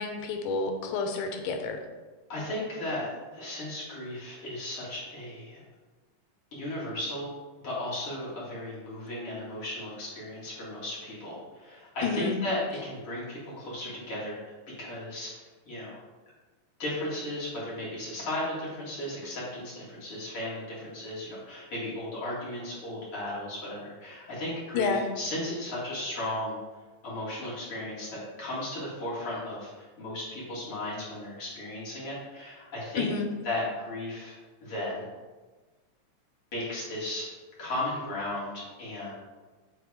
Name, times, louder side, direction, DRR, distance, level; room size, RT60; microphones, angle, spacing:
voice 1, 0.0-1.8 12.0-12.3 24.7-25.1 33.0-33.3, left 4 dB, 85° left, 5 dB, 2.3 m, -29 dB
voice 2, 2.3-5.6 6.5-7.3 7.6-14.4 14.8-15.3 15.7-16.0 16.8-26.6 27.0-33.1 33.4-35.1 36.5-37.3 37.6-39.1, left 1 dB, 50° left, -8 dB, 3.1 m, -35 dB
9.0 x 3.8 x 4.8 m, 1.3 s
omnidirectional pair, 3.5 m